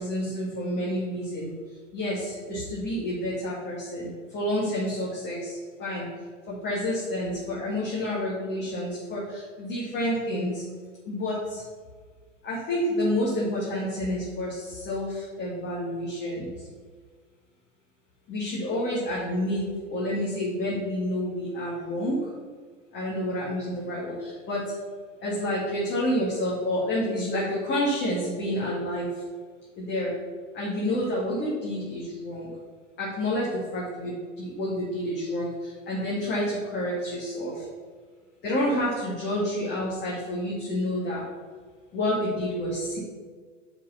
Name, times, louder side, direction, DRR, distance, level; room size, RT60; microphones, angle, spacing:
voice 1, 0.0-1.5 1.9-6.1 6.5-10.6 11.1-11.6 12.4-16.5 18.3-19.6 19.9-22.2 22.9-24.7 25.2-29.1 29.8-30.1 30.5-32.5 33.0-37.6 38.4-41.2 41.9-43.0, left 1 dB, 30° left, -6 dB, 2.2 m, -29 dB
7.1 x 5.0 x 5.6 m, 1.5 s
figure-of-eight pair, 100°, 39 cm